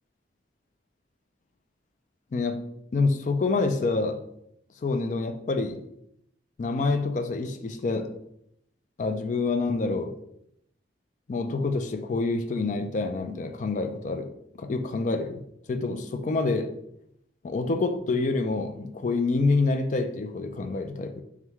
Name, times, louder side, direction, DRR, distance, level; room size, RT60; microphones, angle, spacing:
voice 1, 2.3-2.6 2.9-4.2 4.8-5.8 6.6-8.1 9.0-10.1 11.3-14.3 14.6-15.4 15.7-16.7 17.4-21.2, left 3 dB, 40° left, 9 dB, 0.3 m, -27 dB
3.5 x 3.5 x 3.0 m, 0.75 s
head